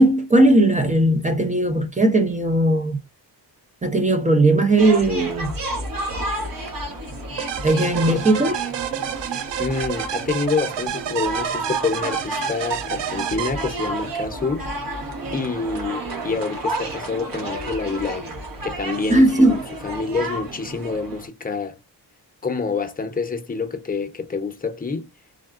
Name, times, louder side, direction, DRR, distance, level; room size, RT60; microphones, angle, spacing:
voice 1, 0.0-3.0 3.8-5.6 7.6-8.5 19.1-19.6, right 1 dB, 20° right, 0.5 m, -17 dB
sound 1, 4.8-21.3, right 2 dB, 55° right, 1.2 m, -31 dB
sound 2, 7.4-14.2, right 10 dB, 90° right, 0.5 m, -29 dB
voice 2, 9.6-14.7 15.3-18.3 18.6-21.8 22.4-25.1, left 4 dB, 20° left, 0.7 m, -27 dB
3.5 x 2.3 x 2.4 m
cardioid pair, 85°, 42 cm